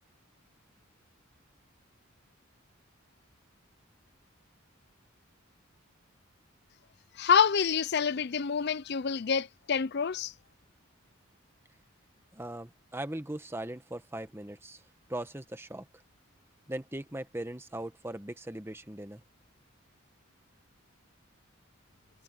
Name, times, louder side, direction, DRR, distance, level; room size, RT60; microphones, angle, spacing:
voice 1, 7.2-10.3, left 6 dB, 50° left, 0.5 m, -27 dB
voice 2, 12.3-14.8 15.1-15.8 16.7-19.2, right 1 dB, 10° right, 1.3 m, -39 dB
head